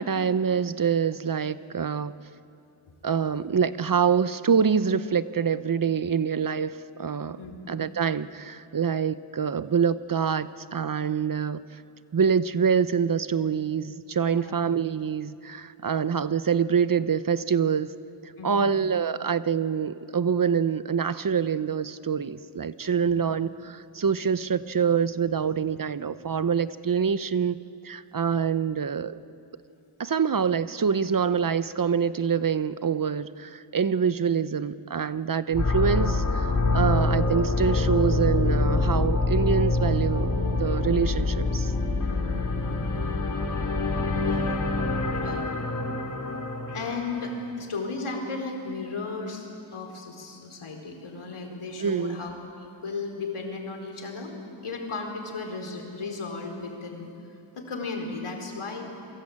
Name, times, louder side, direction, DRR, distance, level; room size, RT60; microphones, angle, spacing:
voice 1, 0.0-2.1 3.0-7.4 7.7-11.6 12.1-17.9 18.2-27.6 27.8-29.2 30.0-41.7 51.8-52.2, right 6 dB, 45° right, 14 dB, 0.7 m, -25 dB
voice 2, 18.4-18.8 23.0-23.1 42.3-43.0 44.1-44.7 45.1-45.5 46.7-49.5 49.7-54.3 54.6-57.1 57.5-58.9, left 3 dB, 80° left, 2 dB, 4.4 m, -35 dB
sound 1, 35.5-47.5, left 2 dB, 40° left, 3.3 m, -25 dB
27.5 x 23.5 x 8.7 m, 2.7 s
wide cardioid pair, 110°, 49 cm